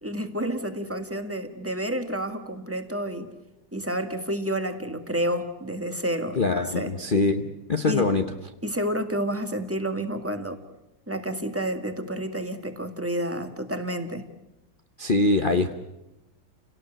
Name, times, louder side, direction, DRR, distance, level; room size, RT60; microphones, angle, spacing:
voice 1, 0.0-3.3 3.7-6.9 7.8-8.1 8.6-10.6 11.1-14.2, right 1 dB, 10° right, 8 dB, 1.7 m, -30 dB
voice 2, 6.3-8.2 15.0-15.7, left 3 dB, 35° left, 7 dB, 0.9 m, -23 dB
29.5 x 18.0 x 9.0 m, 0.97 s
omnidirectional pair, 1.9 m